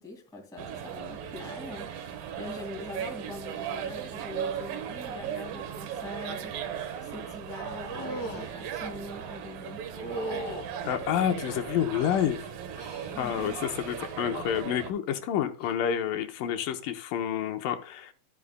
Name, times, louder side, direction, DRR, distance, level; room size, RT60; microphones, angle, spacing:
voice 1, 0.0-6.5 7.0-9.8 13.1-13.6, left 2 dB, ahead, 1.2 m, -43 dB
sound 1, 0.6-14.9, right 8 dB, 85° right, 2.9 m, -37 dB
sound 2, 7.9-8.5 9.9-10.7 11.4-12.3 12.8-13.2 13.5-14.0 15.5-15.7, right 1 dB, 40° left, 1.6 m, -38 dB
voice 2, 10.8-12.4 13.2-18.1, left 9 dB, 85° left, 2.5 m, -29 dB
12.5 x 8.6 x 2.2 m
omnidirectional pair, 3.9 m